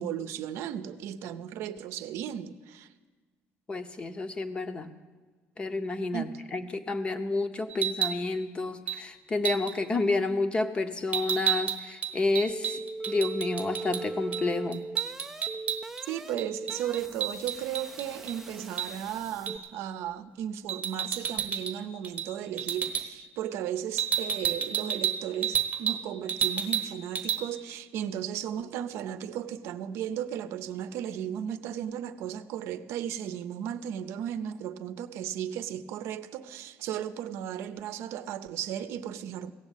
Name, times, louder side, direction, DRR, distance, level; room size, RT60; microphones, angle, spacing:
voice 1, 0.0-2.9 6.1-6.4 16.1-39.5, right 10 dB, 75° right, 0.6 m, -35 dB
voice 2, 3.7-4.9 5.6-14.8, left 3 dB, 25° left, 0.7 m, -30 dB
sound 1, 7.7-8.2 8.9-9.0 9.4-9.7 11.1-14.0 14.3-14.4 14.7-16.0 16.4-18.4 18.8-18.9 19.5-19.7 20.7-21.8 22.0-22.3 22.6-23.1 24.0-26.0 26.3-26.9 27.2-27.4, right 8 dB, 30° right, 1.0 m, -30 dB
sound 2, 12.5-19.6, right 2 dB, 10° right, 0.4 m, -40 dB
16.5 x 7.3 x 9.0 m
cardioid pair, 155°, 5 cm